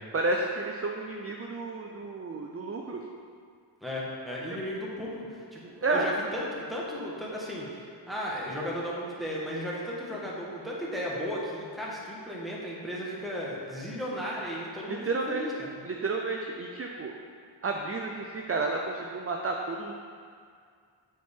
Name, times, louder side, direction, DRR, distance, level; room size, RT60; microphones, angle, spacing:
voice 1, 0.1-3.0 5.8-6.1 14.9-15.5 15.8-17.1 17.6-19.9, right 3 dB, 30° right, 1 dB, 0.5 m, -31 dB
voice 2, 3.8-7.7 8.1-15.8, equal, ahead, -6 dB, 1.5 m, -35 dB
7.5 x 4.3 x 3.6 m, 2.1 s
wide cardioid pair, 40°, 46 cm